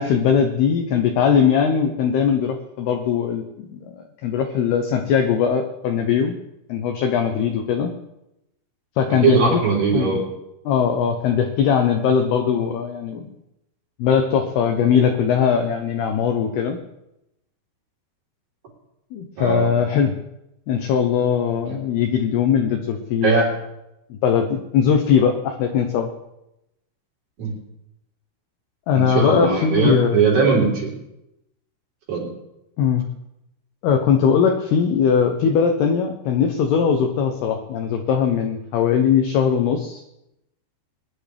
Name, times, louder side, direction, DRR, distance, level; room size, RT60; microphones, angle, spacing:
voice 1, 0.0-3.4 3.7-6.4 6.7-7.9 9.0-9.6 9.9-10.2 10.7-13.3 14.0-16.8 19.1-20.1 20.7-23.3 24.1-26.1 28.9-30.2 32.8-33.0 33.8-40.0, left 7 dB, 80° left, 5 dB, 2.3 m, -20 dB
voice 2, 9.2-10.2 19.4-19.7 23.2-23.5 27.4-27.5 28.9-30.9 32.1-32.2, right 5 dB, 50° right, -4 dB, 5.5 m, -19 dB
22.0 x 11.5 x 3.4 m, 0.88 s
omnidirectional pair, 5.8 m